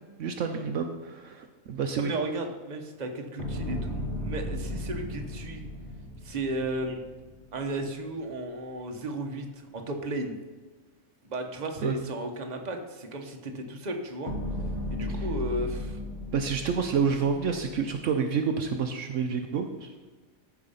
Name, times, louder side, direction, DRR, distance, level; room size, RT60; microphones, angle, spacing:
voice 1, 0.2-2.1 11.8-11.9 15.1-15.2 16.3-20.1, right 6 dB, 70° right, 5 dB, 1.0 m, -29 dB
voice 2, 2.0-5.6 6.2-7.0 7.5-10.4 11.2-14.3 14.9-16.0, right 2 dB, 35° right, 3 dB, 1.1 m, -34 dB
sound 1, 3.4-7.7 14.3-18.0, left 1 dB, 55° left, 2.2 m, -35 dB
14.0 x 4.8 x 5.5 m, 1.3 s
omnidirectional pair, 1.4 m